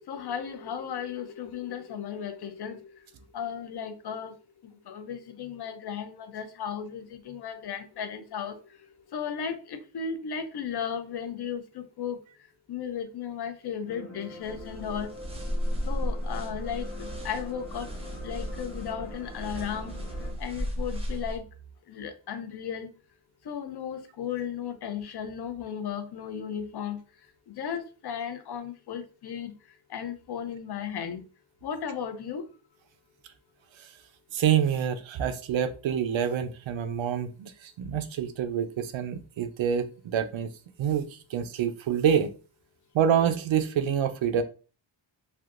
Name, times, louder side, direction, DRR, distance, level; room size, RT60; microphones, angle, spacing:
voice 1, 0.1-2.8 3.3-4.3 4.9-8.6 9.1-12.2 12.7-15.1 15.9-17.9 18.2-20.0 20.4-21.4 21.9-22.9 23.5-27.0 27.5-29.5 29.9-31.2 31.6-32.5, left 7 dB, 60° left, 0.5 m, -35 dB
sound 1, 13.9-20.3, left 2 dB, 45° left, 1.0 m, -45 dB
sound 2, 14.4-21.4, equal, 15° right, 0.5 m, -34 dB
voice 2, 34.3-37.5 37.8-40.5 40.8-41.0 41.3-42.3 42.9-44.4, right 8 dB, 80° right, 0.5 m, -26 dB
3.4 x 2.6 x 2.4 m
wide cardioid pair, 160°, 46 cm